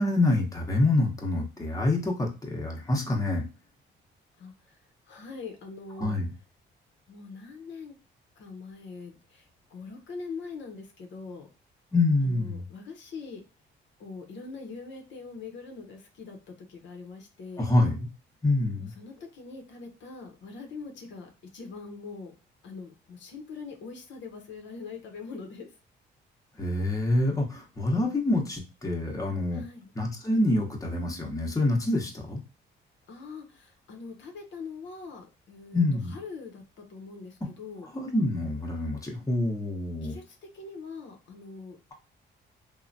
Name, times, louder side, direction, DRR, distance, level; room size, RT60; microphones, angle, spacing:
voice 1, 0.0-3.4 6.0-6.3 11.9-12.6 17.6-18.1 18.4-18.9 26.6-29.6 29.9-32.4 35.7-36.1 37.8-40.2, left 2 dB, 15° left, 0 dB, 0.8 m, -26 dB
voice 2, 5.1-6.2 7.1-7.9 8.4-11.5 12.2-13.4 14.0-17.7 18.8-22.3 22.6-25.7 29.5-29.9 33.1-35.8 36.1-36.6 36.9-37.9 40.0-41.8, left 4 dB, 70° left, 4 dB, 0.7 m, -42 dB
3.1 x 2.1 x 2.6 m, 0.32 s
cardioid pair, 90°, 20 cm